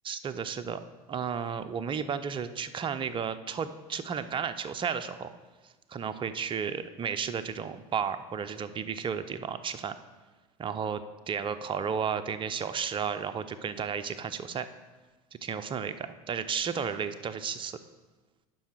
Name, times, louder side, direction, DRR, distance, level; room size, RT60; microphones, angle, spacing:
voice 1, 0.0-0.8 1.1-5.3 5.9-9.9 10.6-14.7 15.4-17.8, right 7 dB, 25° right, 10 dB, 0.6 m, -33 dB
11.5 x 4.7 x 4.7 m, 1.2 s
hypercardioid pair, 80°, 20 cm